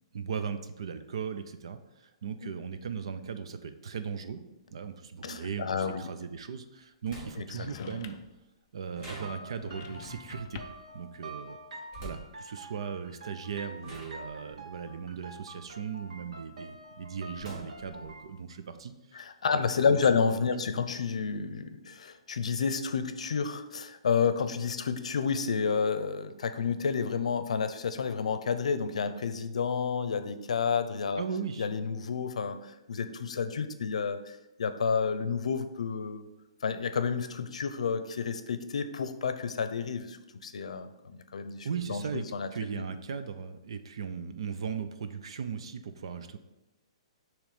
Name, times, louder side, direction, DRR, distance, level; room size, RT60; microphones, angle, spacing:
voice 1, 0.1-4.4 4.7-8.2 8.7-10.6 10.9-11.6 12.0-19.2 19.5-19.7 31.2-31.7 41.6-42.2 42.5-46.4, right 6 dB, 55° right, 9 dB, 0.5 m, -38 dB
voice 2, 5.2-6.1 7.6-7.9 19.1-31.2 31.6-36.3 36.6-42.8, left 5 dB, 80° left, 10 dB, 0.6 m, -30 dB
sound 1, 7.0-7.7 9.0-9.8 11.9-12.4 13.3-13.5 13.8-16.2 16.6-18.1, right 1 dB, 20° right, 1.4 m, -47 dB
sound 2, 7.5-8.4 9.5-11.0, left 9 dB, 25° left, 0.3 m, -47 dB
sound 3, 9.1-18.3, right 2 dB, 80° right, 1.1 m, -47 dB
7.1 x 3.1 x 5.0 m, 0.97 s
hypercardioid pair, 180°, 3 cm